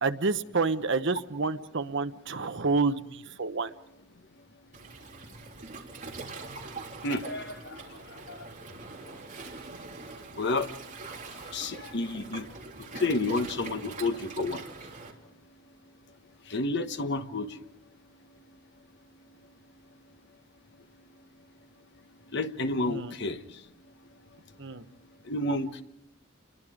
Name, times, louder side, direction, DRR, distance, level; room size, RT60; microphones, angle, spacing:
voice 1, 0.0-3.7 22.9-23.1 24.6-24.8, right 4 dB, 60° right, 10 dB, 1.0 m, -29 dB
Waves surf, 4.7-15.1, right 3 dB, 40° right, 3.5 m, -43 dB
voice 2, 7.0-7.7 8.3-8.4 10.4-10.7 11.5-12.4 12.9-14.6 16.5-17.5 22.3-23.4 25.3-25.8, left 2 dB, 60° left, 9 dB, 1.3 m, -30 dB
29.0 x 22.0 x 5.1 m, 0.83 s
head